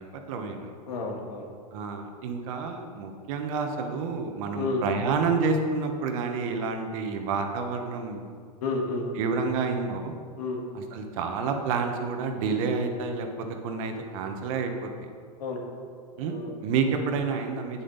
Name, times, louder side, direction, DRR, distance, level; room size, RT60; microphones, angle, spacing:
voice 1, 0.0-0.7 1.7-8.2 9.1-10.1 10.7-14.9 16.2-17.8, right 4 dB, 55° right, 5 dB, 1.3 m, -29 dB
voice 2, 0.9-1.5 4.5-4.8 8.6-9.1 10.4-10.6 15.4-15.6 16.2-16.5, left 3 dB, 70° left, 1 dB, 1.9 m, -31 dB
9.0 x 8.1 x 4.1 m, 2.1 s
hypercardioid pair, 105°, 20 cm